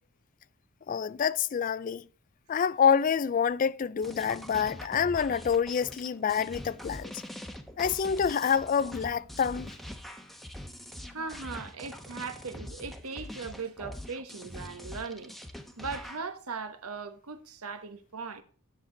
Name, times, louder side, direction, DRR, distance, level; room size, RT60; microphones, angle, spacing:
voice 1, 0.9-2.0 2.5-7.2 7.8-9.7, left 7 dB, 35° left, 0.3 m, -27 dB
sound 1, 4.0-16.2, equal, ahead, 0.9 m, -43 dB
voice 2, 11.1-15.3 15.8-18.4, right 4 dB, 80° right, 1.2 m, -39 dB
10.0 x 6.7 x 3.9 m
head